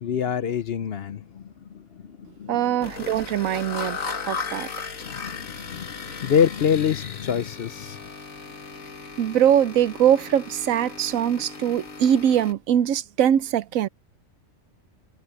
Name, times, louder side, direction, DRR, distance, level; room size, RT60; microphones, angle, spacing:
voice 1, 0.0-2.8 4.3-8.0, left 8 dB, 55° left, 0.8 m, -27 dB
voice 2, 2.5-4.0 4.3-4.7 9.2-13.9, right 10 dB, 85° right, 1.1 m, -22 dB
sound 1, 2.8-12.5, left 4 dB, 80° left, 2.2 m, -36 dB
omnidirectional pair, 1.4 m